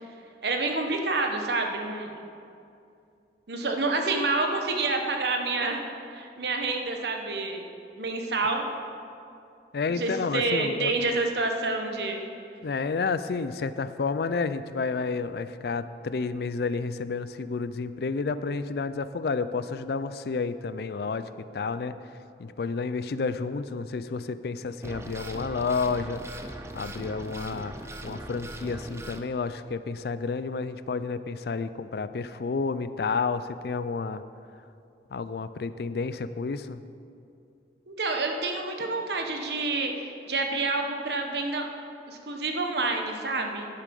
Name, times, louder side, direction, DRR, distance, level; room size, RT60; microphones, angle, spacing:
voice 1, 0.4-2.2 3.5-5.8 6.1-7.7 8.0-8.7 9.9-12.2 37.9-41.7 42.1-43.7, right 3 dB, 70° right, 3 dB, 1.1 m, -28 dB
voice 2, 9.7-10.9 12.6-22.0 22.4-27.7 28.0-34.2 35.1-36.8, left 4 dB, 60° left, 13 dB, 0.4 m, -30 dB
sound 1, 24.8-29.2, right 1 dB, 15° right, 0.5 m, -40 dB
10.5 x 8.4 x 5.3 m, 2.5 s
head